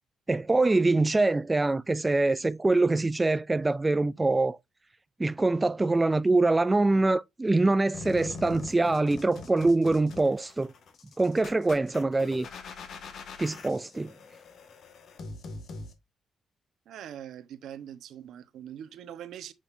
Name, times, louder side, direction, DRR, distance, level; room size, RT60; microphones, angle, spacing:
voice 1, 0.3-4.6 5.2-10.7 11.2-12.5 13.4-14.1, right 2 dB, 20° right, 0.4 m, -24 dB
sound 1, 7.9-15.9, left 3 dB, 65° left, 2.1 m, -43 dB
voice 2, 16.9-19.5, right 10 dB, 75° right, 1.1 m, -42 dB
7.8 x 6.4 x 2.7 m
cardioid pair, 90°, 0 cm